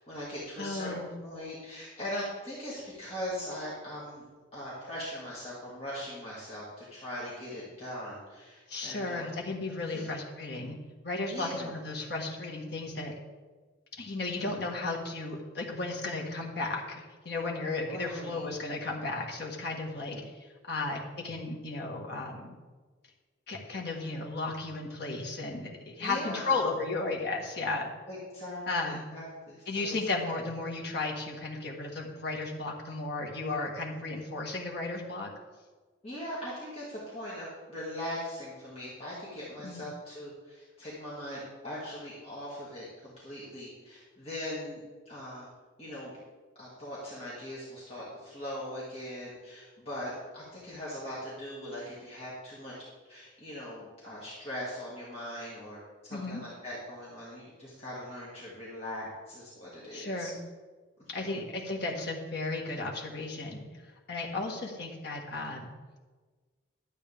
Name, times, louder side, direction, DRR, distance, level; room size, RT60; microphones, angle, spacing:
voice 1, 0.0-9.3 9.8-10.1 11.3-11.8 14.2-14.6 17.9-18.4 20.1-20.2 26.0-26.7 28.1-30.0 36.0-45.5 45.8-46.1 46.6-52.7 53.1-60.3 61.2-61.4, left 1 dB, 30° left, -8 dB, 2.1 m, -40 dB
voice 2, 0.6-1.1 8.7-10.8 11.0-13.1 14.0-22.6 23.5-27.9 28.7-29.0 29.7-35.3 39.6-39.9 56.1-56.4 59.9-60.4 61.1-63.7 64.1-65.7, left 3 dB, 55° left, -1 dB, 1.6 m, -34 dB
12.5 x 8.3 x 3.6 m, 1.4 s
head